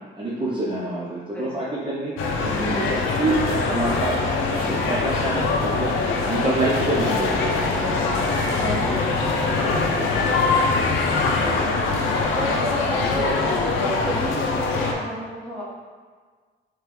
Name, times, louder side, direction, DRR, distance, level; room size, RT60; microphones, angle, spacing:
voice 1, 0.2-2.1 2.4-4.1 4.5-6.0 6.2-7.7 9.4-10.0, right 2 dB, 25° right, -7 dB, 0.7 m, -27 dB
voice 2, 1.3-1.8 7.6-8.2 8.5-9.2 9.6-10.6 11.4-11.8 12.3-15.6, equal, 5° left, -8 dB, 1.4 m, -31 dB
sound 1, 2.2-14.9, left 3 dB, 85° left, 0.5 m, -23 dB
3.5 x 3.3 x 3.1 m, 1.5 s
cardioid pair, 90°, 20 cm